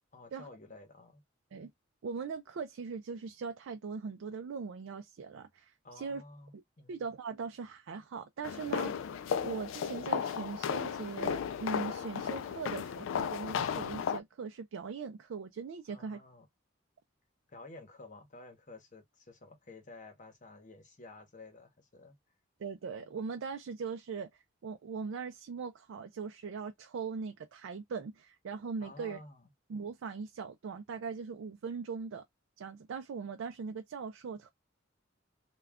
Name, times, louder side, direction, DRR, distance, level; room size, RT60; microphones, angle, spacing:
voice 1, 0.1-1.2 5.8-7.0 15.9-16.5 17.5-22.1 28.8-29.5, left 2 dB, 40° left, 0.9 m, -52 dB
voice 2, 2.0-6.2 6.9-9.1 9.4-16.2 22.6-24.3 24.6-29.2 29.7-32.2 32.6-34.5, right 5 dB, 90° right, 0.4 m, -40 dB
sound 1, 8.4-14.2, left 7 dB, 80° left, 0.3 m, -34 dB
2.3 x 2.3 x 3.4 m
head